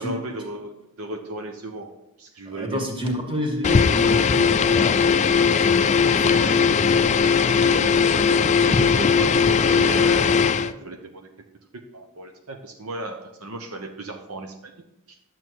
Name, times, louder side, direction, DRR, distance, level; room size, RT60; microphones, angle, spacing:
voice 1, 0.0-1.9 2.2-2.9 6.2-11.3 11.7-14.7 15.1-15.2, right 2 dB, 70° right, 4 dB, 0.9 m, -35 dB
voice 2, 2.5-6.5 7.1-7.3 8.1-8.2, equal, 25° right, 2 dB, 1.9 m, -31 dB
sound 1, 3.6-10.7, left 6 dB, 30° left, 0.4 m, -19 dB
10.5 x 7.6 x 4.6 m, 0.92 s
head